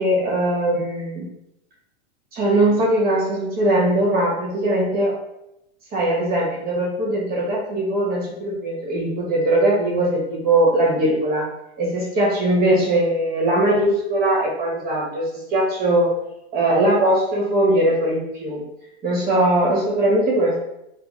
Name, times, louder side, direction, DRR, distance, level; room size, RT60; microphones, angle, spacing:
voice 1, 0.0-1.3 2.3-5.2 5.9-11.5 11.8-16.1 16.5-18.6 19.0-20.6, right 1 dB, 25° right, -4 dB, 1.1 m, -20 dB
3.3 x 2.4 x 3.0 m, 0.84 s
supercardioid pair, 140°, 34 cm